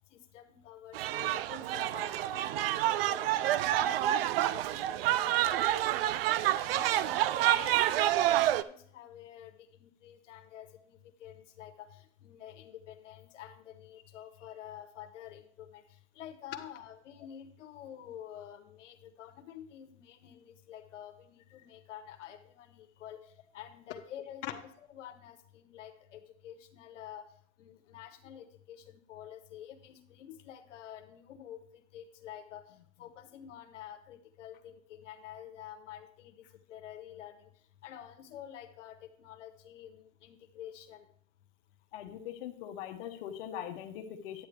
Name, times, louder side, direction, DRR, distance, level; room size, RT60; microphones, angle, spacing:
voice 1, 0.1-3.4 3.7-6.4 6.7-27.3 27.6-32.6 33.0-37.5 37.8-41.1, left 10 dB, 85° left, 7 dB, 1.1 m, -49 dB
sound 1, 0.9-8.6, right 13 dB, 55° right, 0.4 m, -28 dB
voice 2, 41.9-44.5, left 10 dB, 55° left, 3 dB, 1.1 m, -41 dB
9.6 x 9.3 x 3.3 m, 0.64 s
supercardioid pair, 160°, 36 cm